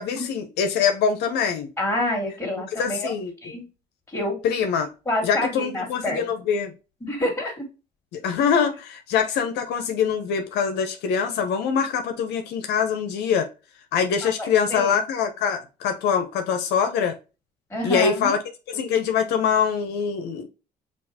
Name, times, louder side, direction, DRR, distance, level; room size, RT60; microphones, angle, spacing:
voice 1, 0.0-1.7 2.8-3.3 4.4-4.9 5.2-6.7 8.1-13.5 13.9-17.1 17.8-18.4 18.7-20.5, left 7 dB, 80° left, 0.8 m, -24 dB
voice 2, 1.8-3.1 3.4-3.6 4.1-4.4 5.1-6.3 7.0-7.7 14.2-14.9 17.7-18.3, left 1 dB, 15° left, 2.4 m, -27 dB
6.2 x 2.5 x 2.8 m
cardioid pair, 110°, 17 cm